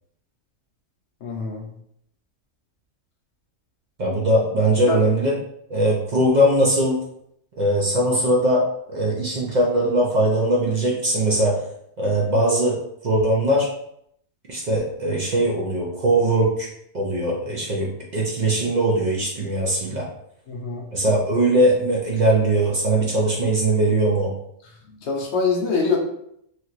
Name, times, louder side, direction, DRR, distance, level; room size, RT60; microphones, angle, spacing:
voice 1, 1.2-1.7 4.9-5.0 20.5-20.8 25.0-26.0, left 4 dB, 65° left, 0 dB, 0.7 m, -24 dB
voice 2, 4.0-5.3 5.7-7.0 7.6-8.6 8.9-11.6 12.0-12.8 13.0-13.7 14.5-16.7 16.9-20.1 20.9-24.3, right 1 dB, 70° right, -3 dB, 0.4 m, -20 dB
3.1 x 2.8 x 2.4 m, 0.73 s
omnidirectional pair, 1.5 m